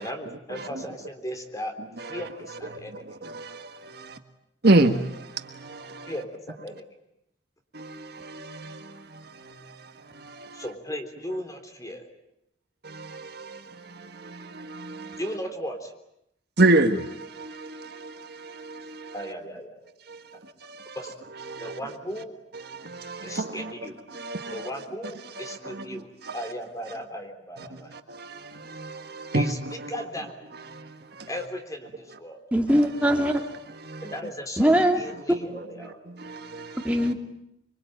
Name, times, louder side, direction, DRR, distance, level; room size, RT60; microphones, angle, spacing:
voice 1, 0.0-1.7 2.0-3.1 6.1-6.9 10.5-12.0 15.2-15.9 19.1-19.8 20.9-21.1 21.6-22.3 23.2-24.0 24.5-26.1 26.3-28.0 29.3-29.6 29.9-30.3 31.3-32.4 34.0-36.0, equal, 15° left, 3.5 m, -36 dB
voice 2, 2.7-4.2 4.6-6.1 7.7-10.6 12.8-15.2 16.6-19.1 20.1-21.0 21.5-21.8 22.6-23.7 24.1-24.7 25.3-26.4 27.6-29.9 30.7-31.3 33.8-34.1 35.8-37.1, right 2 dB, 55° right, 1.6 m, -29 dB
voice 3, 32.5-33.3 34.6-35.0 36.8-37.1, equal, 5° right, 2.4 m, -21 dB
25.5 x 24.5 x 9.1 m
head